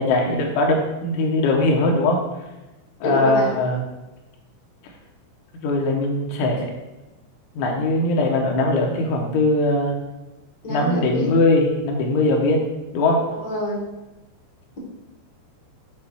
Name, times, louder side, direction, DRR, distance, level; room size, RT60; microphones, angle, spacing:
voice 1, 0.0-2.2 3.0-3.8 5.6-6.7 7.6-10.0 10.7-12.6 12.9-13.2, left 2 dB, 80° left, 0 dB, 3.3 m, -20 dB
voice 2, 3.0-3.5 10.6-11.3 13.3-13.8, equal, 60° left, -4 dB, 1.2 m, -26 dB
8.5 x 3.0 x 6.0 m, 1.1 s
omnidirectional pair, 5.6 m